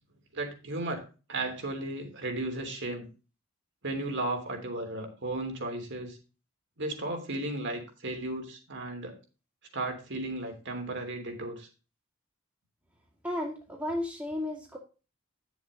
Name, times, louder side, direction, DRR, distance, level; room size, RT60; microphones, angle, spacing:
voice 1, 0.3-1.0 1.3-3.1 3.8-6.2 6.8-9.2 9.7-11.7, right 2 dB, 60° right, 3 dB, 3.2 m, -35 dB
voice 2, 13.2-14.8, left 1 dB, 10° right, -3 dB, 2.0 m, -33 dB
10.5 x 7.2 x 3.8 m, 0.33 s
head